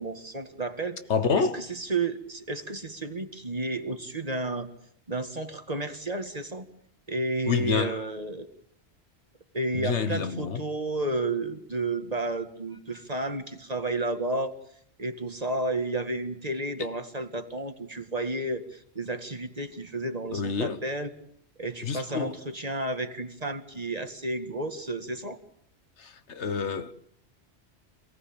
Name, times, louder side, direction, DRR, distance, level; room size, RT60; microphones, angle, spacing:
voice 1, 0.0-1.0 1.4-4.7 5.1-6.7 7.1-8.5 9.5-14.5 15.0-21.1 21.6-25.4, right 2 dB, 35° right, 2.0 m, -32 dB
voice 2, 1.1-1.6 7.5-8.0 9.7-10.6 16.8-16.9 20.3-20.8 21.8-22.4 26.0-26.9, left 5 dB, 85° left, 1.6 m, -28 dB
27.0 x 18.5 x 8.8 m
omnidirectional pair, 1.1 m